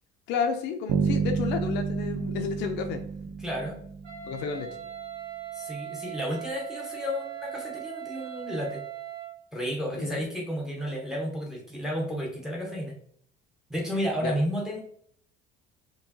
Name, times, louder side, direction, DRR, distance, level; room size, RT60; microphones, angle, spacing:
voice 1, 0.3-3.0 4.2-4.7 10.0-10.2 14.2-14.3, left 6 dB, 65° left, 5 dB, 0.6 m, -31 dB
Bass guitar, 0.9-4.7, right 5 dB, 65° right, 0.5 m, -30 dB
voice 2, 3.4-3.8 5.5-8.8 9.5-12.9 13.7-14.8, equal, 5° right, -2 dB, 0.8 m, -32 dB
Wind instrument woodwind instrument, 4.0-9.4, right 11 dB, 35° right, 1.3 m, -39 dB
4.6 x 2.9 x 2.8 m, 0.62 s
cardioid pair, 160°, 20 cm